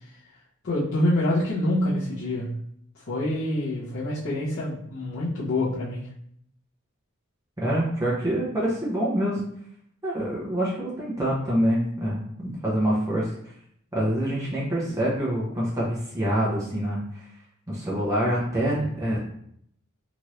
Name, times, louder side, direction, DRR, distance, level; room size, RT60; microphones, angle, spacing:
voice 1, 0.6-2.6 3.1-6.1, left 1 dB, 60° left, -11 dB, 0.8 m, -26 dB
voice 2, 7.6-9.4 10.0-13.3 13.9-17.0 17.7-19.3, equal, 15° right, -6 dB, 0.7 m, -26 dB
2.9 x 2.5 x 3.1 m, 0.69 s
head